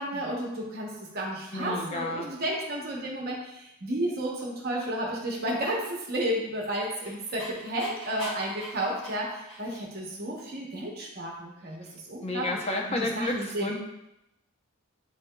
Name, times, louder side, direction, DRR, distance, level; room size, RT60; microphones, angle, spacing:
voice 1, 0.0-12.5 13.0-13.7, right 1 dB, 45° right, -3 dB, 0.8 m, -32 dB
voice 2, 1.5-2.3 11.8-11.9 12.2-13.8, left 2 dB, 30° left, 1 dB, 0.5 m, -31 dB
Dog, 6.3-10.0, left 1 dB, 60° left, 1.1 m, -43 dB
7.7 x 2.8 x 2.2 m, 0.88 s
head